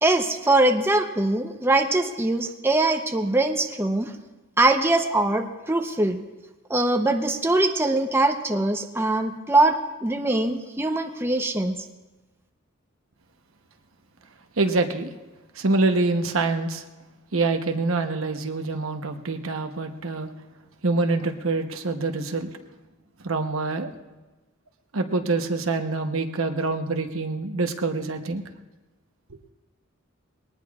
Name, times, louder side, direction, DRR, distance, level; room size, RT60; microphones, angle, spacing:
voice 1, 0.0-4.1 4.6-6.2 6.7-11.7, right 2 dB, 10° right, 5 dB, 0.7 m, -22 dB
voice 2, 14.6-15.1 15.5-16.8 17.3-20.3 20.8-22.5 23.2-23.9 24.9-28.4, right 3 dB, 90° right, 6 dB, 1.0 m, -25 dB
21.5 x 18.5 x 2.4 m, 1.1 s
head